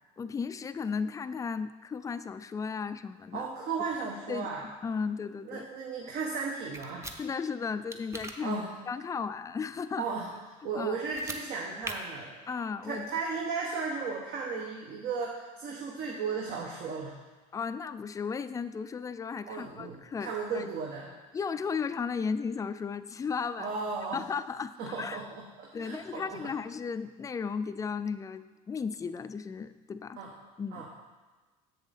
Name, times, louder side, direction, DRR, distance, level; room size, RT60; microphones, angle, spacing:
voice 1, 0.2-3.5 4.3-5.7 7.2-10.1 10.7-10.9 12.5-13.1 17.5-20.7 21.3-23.7 24.1-25.3 25.7-30.2 30.6-30.8, left 5 dB, 20° left, 12 dB, 0.3 m, -35 dB
voice 2, 3.3-4.6 5.4-7.1 8.4-8.7 10.0-10.3 10.6-12.4 12.9-17.1 19.5-21.1 23.6-24.2 24.8-26.4 30.2-30.3 30.7-30.9, right 5 dB, 60° right, -1 dB, 1.2 m, -35 dB
sound 1, 6.7-7.2 7.9-8.3 11.0-11.4 11.8-11.9, right 2 dB, 15° right, 0.8 m, -39 dB
7.2 x 6.9 x 4.1 m, 1.3 s
supercardioid pair, 90°, 19 cm